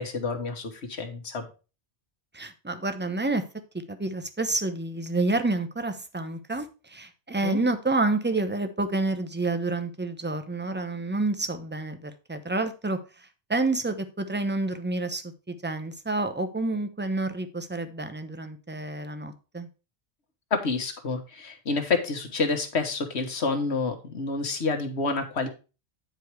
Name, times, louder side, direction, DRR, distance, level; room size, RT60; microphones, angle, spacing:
voice 1, 0.0-1.5 7.4-7.6 20.5-25.5, left 4 dB, 85° left, 5 dB, 1.6 m, -28 dB
voice 2, 2.3-3.4 3.9-13.0 13.5-19.7, right 2 dB, 10° right, 9 dB, 0.8 m, -29 dB
9.1 x 4.8 x 4.6 m, 0.32 s
omnidirectional pair, 1.1 m